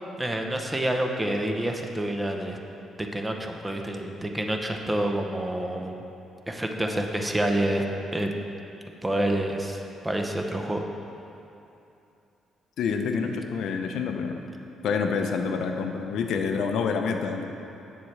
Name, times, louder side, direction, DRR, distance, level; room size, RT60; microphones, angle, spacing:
voice 1, 0.2-2.6 3.0-6.0 6.5-7.8 8.1-8.3 9.0-10.8, right 1 dB, 15° right, 3 dB, 0.7 m, -28 dB
voice 2, 12.8-14.4 14.8-17.4, left 5 dB, 75° left, 4 dB, 0.5 m, -27 dB
8.5 x 7.0 x 3.3 m, 2.8 s
cardioid pair, 90°, 0 cm